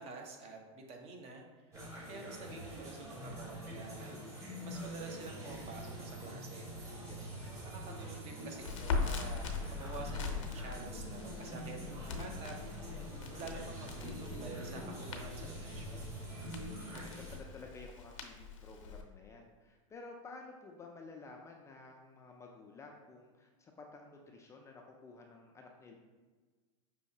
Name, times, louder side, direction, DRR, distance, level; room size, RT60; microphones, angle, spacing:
voice 1, 0.0-1.7 2.1-4.1 4.6-6.7 7.6-12.8 13.3-16.1, right 3 dB, 40° right, 2 dB, 0.8 m, -48 dB
sound 1, 1.7-17.4, right 1 dB, 20° right, 1.2 m, -45 dB
voice 2, 6.8-7.5 16.6-25.9, left 3 dB, 15° left, 1 dB, 0.4 m, -53 dB
Crackle, 8.6-19.0, left 5 dB, 80° left, 0.6 m, -41 dB
5.4 x 2.8 x 2.7 m, 1.3 s
hypercardioid pair, 115°, 16 cm